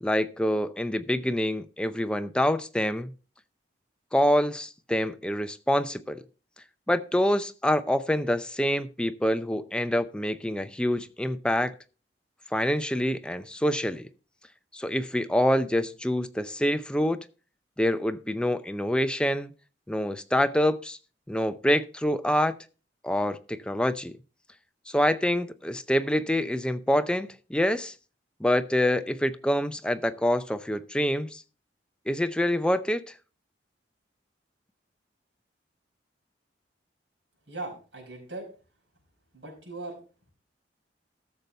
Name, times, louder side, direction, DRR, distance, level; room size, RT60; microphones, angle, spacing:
voice 1, 0.0-3.1 4.1-6.2 6.9-11.7 12.5-14.1 14.7-17.2 17.8-19.5 19.9-21.0 21.3-22.6 23.0-24.1 24.9-27.9 28.4-31.4 32.1-33.0, equal, 5° left, 0.6 m, -26 dB
voice 2, 37.5-38.5 39.3-40.0, right 2 dB, 75° right, 5.4 m, -39 dB
13.5 x 6.8 x 4.2 m
head